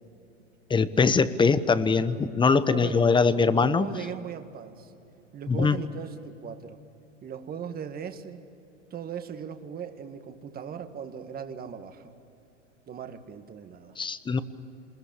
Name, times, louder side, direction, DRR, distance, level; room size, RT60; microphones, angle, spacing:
voice 1, 0.7-3.9 5.5-5.8 14.0-14.4, left 4 dB, 15° left, 14 dB, 1.0 m, -22 dB
voice 2, 2.5-3.1 3.4-4.9 5.3-6.8 7.2-8.4 8.9-12.1 12.9-14.0, right 7 dB, 25° right, 8 dB, 1.8 m, -39 dB
27.0 x 21.0 x 8.9 m, 2.8 s
hypercardioid pair, 110°, 37 cm